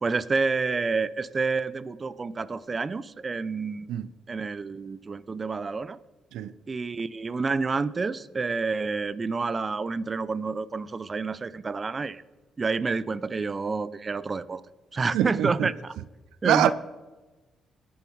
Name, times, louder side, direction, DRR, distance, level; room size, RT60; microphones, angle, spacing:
voice 1, 0.0-3.9 4.3-6.0 6.7-12.2 12.6-14.6 14.9-16.0 16.4-16.7, right 4 dB, 30° right, 0.6 m, -29 dB
voice 2, 15.1-15.7 16.4-16.7, right 11 dB, 85° right, 0.5 m, -24 dB
21.0 x 7.1 x 4.7 m
cardioid pair, 90°, 0 cm